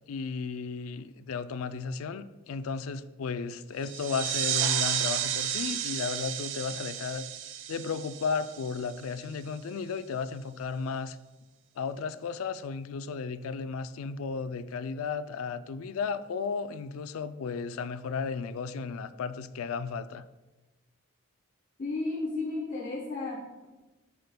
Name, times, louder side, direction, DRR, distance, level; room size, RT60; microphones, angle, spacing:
voice 1, 0.1-7.3 7.7-11.2 11.8-20.2, left 5 dB, 85° left, 13 dB, 0.4 m, -34 dB
sound 1, 3.8-9.1, right 9 dB, 60° right, 0.4 m, -32 dB
voice 2, 21.8-23.7, left 3 dB, 40° left, -3 dB, 0.9 m, -33 dB
7.6 x 6.9 x 2.2 m, 1.1 s
head